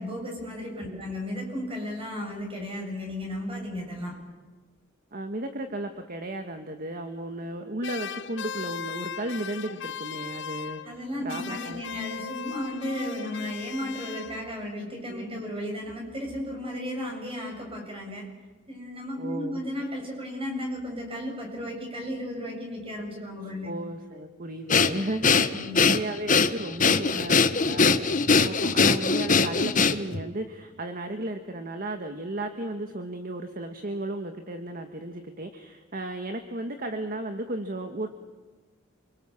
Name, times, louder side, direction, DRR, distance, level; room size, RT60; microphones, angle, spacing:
voice 1, 0.0-4.2 10.8-18.3 18.7-23.7 25.5-25.8, left 1 dB, 30° right, 1 dB, 7.6 m, -34 dB
voice 2, 5.1-10.8 11.2-11.8 15.1-15.4 19.2-19.6 23.6-38.1, right 1 dB, 45° right, 6 dB, 1.6 m, -34 dB
sound 1, 7.8-11.0 11.3-14.7, left 7 dB, 65° left, 1.0 m, -38 dB
Breathing, 24.7-30.2, left 5 dB, 40° left, 1.3 m, -21 dB
27.5 x 25.0 x 7.3 m, 1.3 s
head